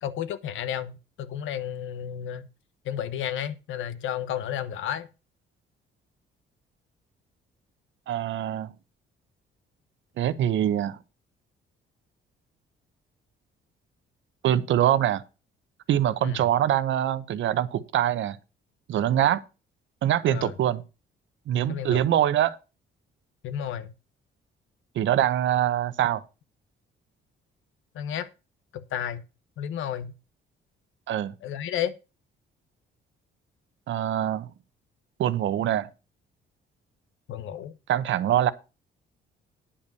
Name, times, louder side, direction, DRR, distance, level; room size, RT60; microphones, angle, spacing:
voice 1, 0.0-2.4 2.8-5.1 16.2-16.4 20.3-20.5 21.7-22.0 23.4-23.9 27.9-28.3 28.7-29.2 29.6-30.2 31.4-31.9 37.3-37.8, left 9 dB, 80° left, 1.1 m, -32 dB
voice 2, 8.1-8.7 10.2-11.0 14.4-15.2 15.9-18.4 18.9-19.4 20.0-20.8 21.5-22.6 24.9-26.2 31.1-31.3 33.9-34.5 35.2-35.9 37.9-38.5, right 11 dB, 70° right, 0.9 m, -24 dB
9.9 x 5.4 x 6.9 m
cardioid pair, 90°, 20 cm